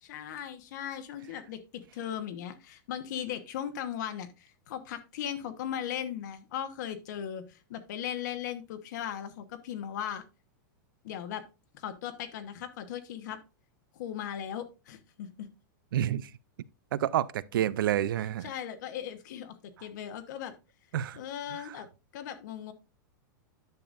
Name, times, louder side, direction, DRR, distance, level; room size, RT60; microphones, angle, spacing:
voice 1, 0.0-10.2 11.0-11.4 11.7-13.4 13.9-15.5 18.4-20.5 21.2-21.9 22.1-22.7, left 9 dB, 60° left, 1.1 m, -38 dB
voice 2, 15.9-16.3 16.9-18.5 20.9-21.2 21.5-21.8, right 11 dB, 85° right, 0.5 m, -29 dB
10.5 x 6.8 x 2.5 m
supercardioid pair, 165°, 11 cm